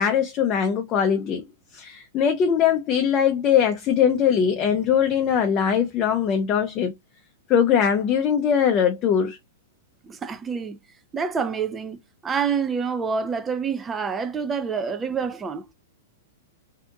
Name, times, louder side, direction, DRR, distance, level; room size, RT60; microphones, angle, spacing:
voice 1, 0.0-1.5 1.7-6.9 7.5-9.4, left 8 dB, 35° left, 0.6 m, -21 dB
voice 2, 10.0-10.8 11.1-15.7, right 6 dB, 20° right, 0.6 m, -27 dB
2.7 x 2.5 x 3.4 m
hypercardioid pair, 115°, 0 cm